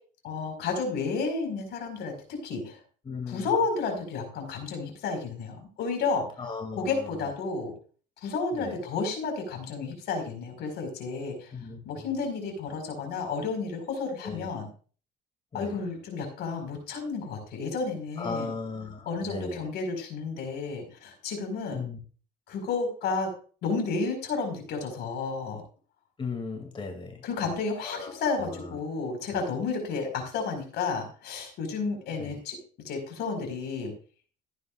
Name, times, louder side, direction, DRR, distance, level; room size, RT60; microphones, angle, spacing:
voice 1, 0.2-2.1 2.4-2.8 3.3-6.2 6.8-7.7 8.2-11.5 11.8-14.7 15.5-18.5 19.0-21.8 22.5-23.3 23.6-25.6 27.2-32.6 32.8-33.9, left 4 dB, 75° left, 4 dB, 5.0 m, -31 dB
voice 2, 3.0-3.5 6.4-7.3 8.6-8.8 11.5-12.0 14.2-14.5 15.5-15.8 18.2-19.7 21.7-22.0 26.2-27.3 27.8-28.8 32.2-32.4, left 4 dB, 30° left, 3 dB, 2.6 m, -37 dB
15.5 x 9.6 x 2.5 m, 0.39 s
cardioid pair, 110°, 17 cm